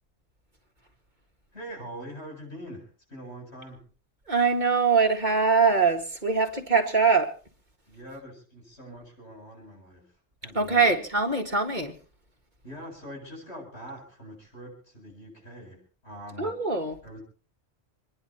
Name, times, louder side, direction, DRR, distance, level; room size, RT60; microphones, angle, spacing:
voice 1, 1.5-3.8 7.9-10.2 10.4-10.9 12.6-16.6 17.0-17.2, equal, 70° left, 0 dB, 8.3 m, -43 dB
voice 2, 4.3-7.3 10.5-11.9 16.4-17.0, right 4 dB, 40° right, 4 dB, 2.2 m, -23 dB
27.0 x 10.5 x 4.4 m, 0.38 s
omnidirectional pair, 1.2 m